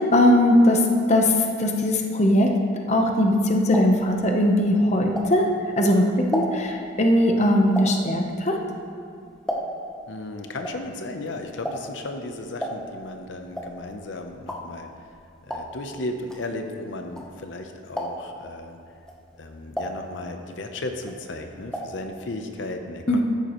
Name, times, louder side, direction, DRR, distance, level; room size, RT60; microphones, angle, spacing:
voice 1, 0.0-2.5 2.9-5.5 5.8-8.6 23.1-23.2, left 1 dB, 35° left, 2 dB, 0.9 m, -20 dB
sound 1, 3.2-5.7 6.1-10.0 10.3-17.6 17.9-18.5 18.9-20.7 20.9-22.0 22.3-22.4 22.6-22.7, equal, 5° left, 1.0 m, -34 dB
voice 2, 10.1-14.9 15.5-18.8 19.4-23.2, left 2 dB, 80° left, 5 dB, 0.8 m, -35 dB
13.5 x 10.5 x 3.1 m, 2.4 s
head